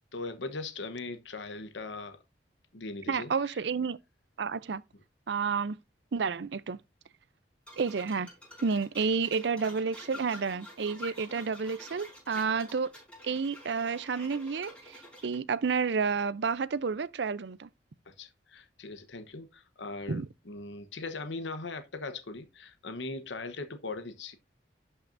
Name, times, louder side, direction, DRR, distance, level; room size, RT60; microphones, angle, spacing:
voice 1, 0.1-2.2 2.7-3.6 18.1-24.3, left 3 dB, 80° left, 1.0 m, -40 dB
voice 2, 3.1-4.0 4.4-4.8 5.3-5.8 6.1-6.8 7.8-8.3 8.6-12.9 13.2-17.7 20.1-20.3, right 5 dB, 70° right, 0.5 m, -30 dB
sound 1, 7.7-15.4, left 1 dB, 5° left, 5.0 m, -48 dB
11.5 x 5.6 x 2.6 m
head